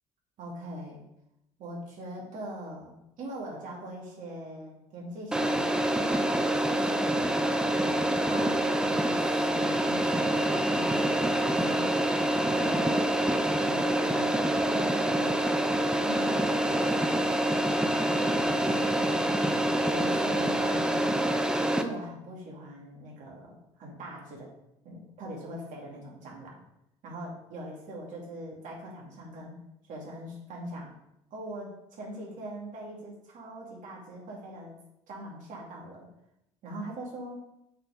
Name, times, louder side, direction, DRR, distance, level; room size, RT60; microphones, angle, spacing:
voice 1, 0.4-1.0 1.6-7.2 7.7-11.9 12.5-13.0 13.6-15.4 16.0-19.3 19.8-21.0 21.7-24.5 24.8-26.6 27.0-29.6 29.8-30.9 31.3-34.8 35.1-36.1 36.6-37.5, right 1 dB, 60° right, -2 dB, 2.6 m, -41 dB
sound 1, 5.3-21.8, right 1 dB, 5° right, 0.6 m, -26 dB
6.5 x 4.5 x 5.2 m, 0.83 s
supercardioid pair, 85°, 15 cm